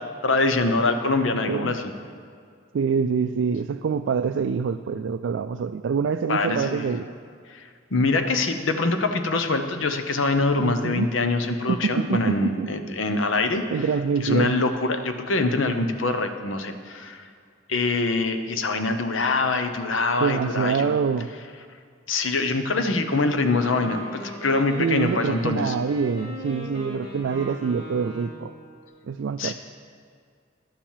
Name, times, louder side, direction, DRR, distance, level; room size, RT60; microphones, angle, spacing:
voice 1, 0.2-1.9 6.3-6.9 7.5-13.6 14.2-17.3 17.7-20.9 22.1-25.7 29.4-29.5, left 3 dB, 80° left, 7 dB, 0.9 m, -24 dB
voice 2, 1.5-1.8 2.7-7.1 10.6-11.1 11.7-12.7 13.7-14.6 20.2-21.3 24.8-28.5 29.1-29.5, right 6 dB, 70° right, 8 dB, 0.3 m, -25 dB
Wind instrument woodwind instrument, 23.3-28.6, left 1 dB, 50° left, 2.4 m, -38 dB
11.0 x 7.2 x 7.4 m, 2.2 s
head